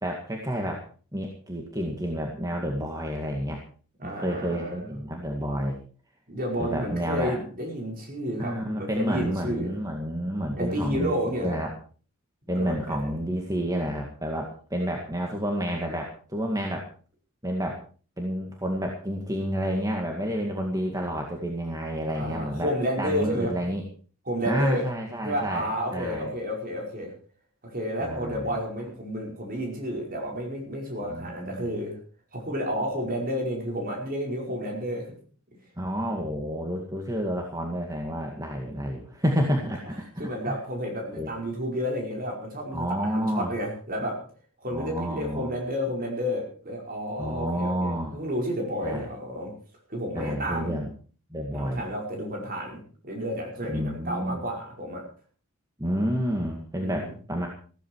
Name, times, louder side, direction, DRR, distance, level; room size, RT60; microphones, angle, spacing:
voice 1, 0.0-0.8 1.1-3.6 4.0-5.8 6.6-7.4 8.4-11.7 12.5-16.8 17.4-17.8 18.2-22.7 23.0-23.8 24.4-26.3 28.0-28.4 31.1-31.7 35.8-40.6 41.2-41.3 42.7-43.5 44.7-45.5 47.2-48.1 48.8-49.1 50.1-50.9 51.3-51.8 53.7-54.4 55.8-57.5, equal, 15° right, 1 dB, 2.1 m, -30 dB
voice 2, 4.0-4.9 6.3-9.7 10.5-11.6 12.5-13.1 22.1-23.6 24.3-24.9 25.2-27.1 27.6-32.0 32.3-35.1 40.2-44.3 44.6-49.5 49.9-50.8 51.5-55.0 56.8-57.1, equal, 40° right, 1 dB, 5.2 m, -31 dB
15.5 x 14.0 x 4.7 m, 0.41 s
head